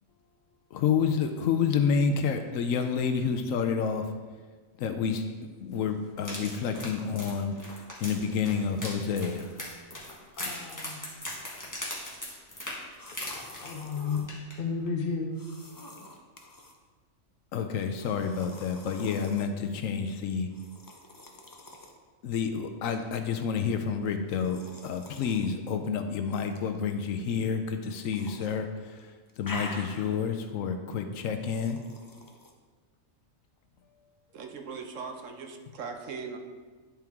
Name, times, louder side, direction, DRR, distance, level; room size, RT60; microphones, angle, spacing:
voice 1, 0.7-4.1 4.8-5.2 5.6-9.6 17.5-20.5 22.2-31.8, left 6 dB, 75° left, 7 dB, 1.0 m, -29 dB
sound 1, 6.2-14.0 14.3-14.5 14.9-15.0, left 1 dB, 15° left, 1.3 m, -39 dB
voice 2, 10.4-11.0 13.3-14.2 14.6-15.3, left 5 dB, 45° left, 0 dB, 0.8 m, -33 dB
sound 2, 13.0-14.3 15.3-16.8 18.0-19.5 20.5-22.0 22.8-23.1 24.3-25.5 26.4-27.1 28.0-28.6 28.9-30.3 31.4-32.5, left 2 dB, 30° left, 0.3 m, -46 dB
voice 3, 34.3-36.4, right 5 dB, 70° right, 4 dB, 1.1 m, -39 dB
10.5 x 4.5 x 3.5 m, 1.4 s
omnidirectional pair, 1.4 m